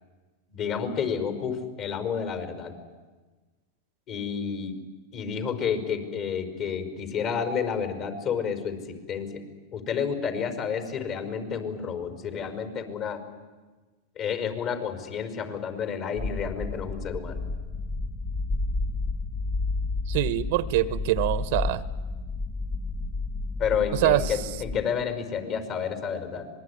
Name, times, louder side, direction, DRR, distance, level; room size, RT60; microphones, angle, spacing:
voice 1, 0.5-2.7 4.1-4.8 5.1-9.4 9.7-13.2 14.2-17.4 23.6-26.5, left 7 dB, 45° left, 8 dB, 5.2 m, -30 dB
sound 1, 16.2-24.9, left 3 dB, 20° left, 1.0 m, -31 dB
voice 2, 20.1-21.8 23.9-24.3, right 15 dB, 65° right, 16 dB, 1.1 m, -24 dB
26.0 x 20.5 x 9.9 m, 1.3 s
hypercardioid pair, 115°, 0 cm